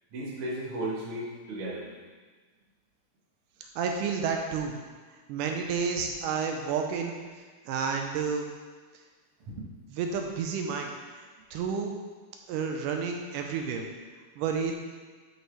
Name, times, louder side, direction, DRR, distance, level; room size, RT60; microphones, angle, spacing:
voice 1, 0.1-2.0 9.4-9.7, right 1 dB, 55° right, -4 dB, 1.9 m, -35 dB
voice 2, 3.8-4.8 5.3-7.2 7.7-8.5 10.0-10.9 11.5-11.9 12.5-13.9 14.4-14.7, right 6 dB, 85° right, 3 dB, 2.2 m, -30 dB
7.9 x 6.1 x 3.2 m, 1.4 s
omnidirectional pair, 3.7 m